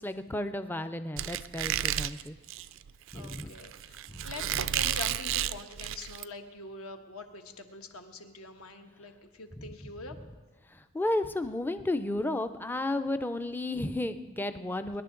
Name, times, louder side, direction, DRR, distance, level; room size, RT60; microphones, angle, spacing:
voice 1, 0.0-2.4 3.1-3.5 4.1-4.3 4.5-4.6 9.6-9.7 10.7-15.0, left 1 dB, 10° left, 10 dB, 0.4 m, -33 dB
Squeak, 1.2-6.2, right 11 dB, 60° right, 0.3 m, -32 dB
voice 2, 3.1-10.1, left 3 dB, 75° left, 5 dB, 1.3 m, -44 dB
24.0 x 11.0 x 3.8 m, 1.3 s
head